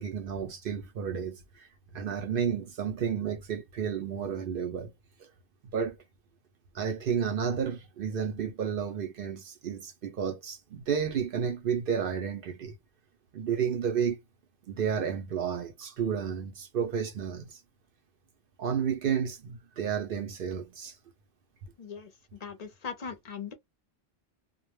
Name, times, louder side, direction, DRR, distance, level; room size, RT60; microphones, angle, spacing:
voice 1, 0.0-1.7 1.9-4.9 5.7-5.9 6.7-12.7 13.3-14.2 14.7-17.6 18.6-21.0, right 7 dB, 60° right, 0.7 m, -31 dB
voice 2, 21.8-23.5, left 6 dB, 50° left, 0.5 m, -40 dB
2.2 x 2.0 x 3.1 m
omnidirectional pair, 1.1 m